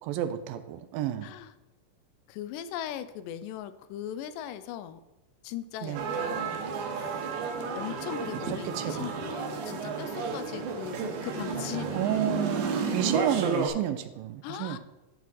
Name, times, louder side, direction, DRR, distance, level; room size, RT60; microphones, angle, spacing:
voice 1, 0.0-1.3 5.8-6.1 8.5-9.1 11.6-14.8, right 12 dB, 85° right, 10 dB, 2.4 m, -31 dB
voice 2, 1.2-1.5 2.3-5.0 5.4-6.6 7.0-7.3 7.7-12.5 14.4-14.8, left 10 dB, 80° left, 13 dB, 2.1 m, -39 dB
sound 1, 5.9-13.7, right 4 dB, 70° right, 2.2 m, -32 dB
12.0 x 4.7 x 4.1 m, 1.0 s
omnidirectional pair, 4.1 m